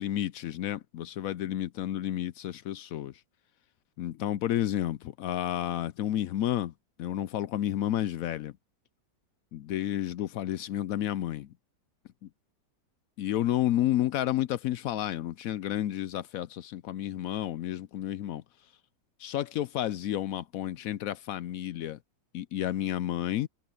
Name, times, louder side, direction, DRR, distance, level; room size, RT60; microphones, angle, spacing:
voice 1, 0.0-3.1 4.0-6.7 7.0-8.5 9.5-11.5 13.2-18.4 19.2-22.0 22.3-23.5, left 12 dB, 75° left, 0.8 m, -31 dB
omnidirectional pair, 1.9 m